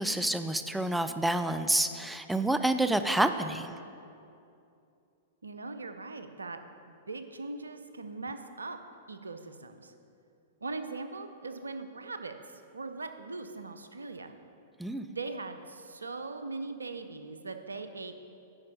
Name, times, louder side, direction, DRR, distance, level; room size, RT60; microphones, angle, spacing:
voice 1, 0.0-3.8 14.8-15.1, right 1 dB, 5° right, 10 dB, 0.3 m, -28 dB
voice 2, 5.4-6.6 6.9-8.8 9.1-9.9 10.6-14.3 15.1-18.2, right 3 dB, 80° right, 8 dB, 0.5 m, -40 dB
9.5 x 5.3 x 5.3 m, 2.6 s
figure-of-eight pair, 105°, 0 cm